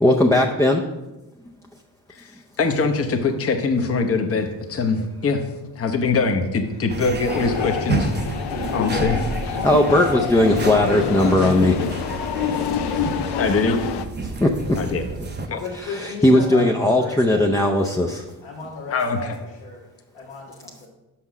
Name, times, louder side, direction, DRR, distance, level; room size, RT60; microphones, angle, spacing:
voice 1, 0.0-0.8 9.6-11.7 14.4-14.8 15.9-18.2, left 1 dB, 5° left, 0 dB, 0.5 m, -18 dB
voice 2, 2.1-5.4 5.8-8.1 8.7-9.3 13.4-13.9 14.7-15.0 15.5-15.6 18.9-19.4, left 4 dB, 30° left, 5 dB, 0.8 m, -23 dB
sound 1, 6.9-15.5, right 3 dB, 25° right, 0.7 m, -30 dB
sound 2, 7.3-14.0, left 8 dB, 60° left, 0.6 m, -27 dB
voice 3, 10.5-11.8 12.5-12.7 13.8-14.0 15.6-17.4 18.4-19.3 19.6-19.8 20.1-20.9, left 4 dB, 80° left, -6 dB, 1.5 m, -34 dB
5.8 x 5.3 x 6.0 m, 1.0 s
cardioid pair, 75°, 45 cm